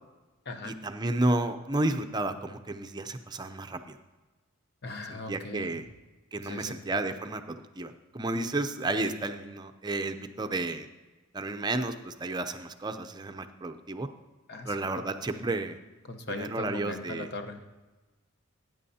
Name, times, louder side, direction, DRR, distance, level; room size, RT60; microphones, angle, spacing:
voice 1, 0.6-4.0 5.1-5.8 6.3-10.9 11.3-14.1 14.7-15.8 16.3-17.3, right 2 dB, 20° right, 8 dB, 0.6 m, -32 dB
voice 2, 4.8-5.8 6.4-6.8 14.5-15.0 16.0-17.6, left 2 dB, 50° left, 7 dB, 0.9 m, -39 dB
18.0 x 9.1 x 2.8 m, 1.2 s
head